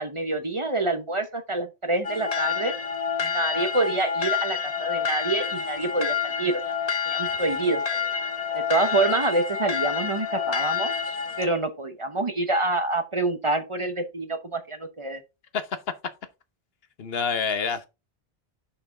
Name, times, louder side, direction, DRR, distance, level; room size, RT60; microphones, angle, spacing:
voice 1, 0.0-2.7 3.2-6.6 7.1-8.1 8.5-10.9 11.4-15.2, right 2 dB, 35° right, 0.8 m, -27 dB
sound 1, 2.0-11.5, left 6 dB, 40° left, 0.8 m, -28 dB
voice 2, 17.0-17.9, left 5 dB, 70° left, 1.1 m, -27 dB
6.7 x 5.6 x 3.7 m
omnidirectional pair, 1.0 m